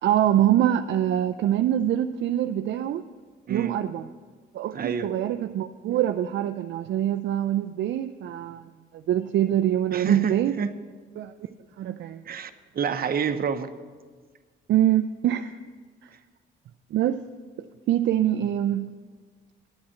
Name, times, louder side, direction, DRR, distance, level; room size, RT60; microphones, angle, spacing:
voice 1, 0.0-3.0 3.5-4.1 4.5-10.6 11.2-11.3 11.8-12.2 14.7-15.6 16.0-16.1 16.9-17.2 17.9-18.9, right 11 dB, 65° right, 8 dB, 0.4 m, -24 dB
voice 2, 4.7-5.1 9.9-10.7 12.3-13.7, right 6 dB, 50° right, 10 dB, 0.8 m, -28 dB
9.7 x 8.6 x 7.6 m, 1.5 s
cardioid pair, 90°, 20 cm